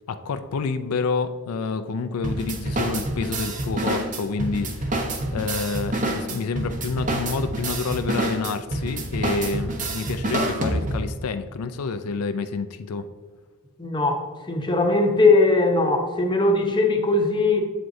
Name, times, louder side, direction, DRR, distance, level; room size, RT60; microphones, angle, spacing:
voice 1, 0.1-5.1 5.3-13.1, left 4 dB, 85° left, 9 dB, 0.4 m, -28 dB
sound 1, 2.2-11.2, right 1 dB, 35° right, 0.9 m, -27 dB
voice 2, 13.8-17.6, left 3 dB, 20° left, 3 dB, 0.8 m, -20 dB
7.7 x 7.6 x 2.7 m, 1.5 s
head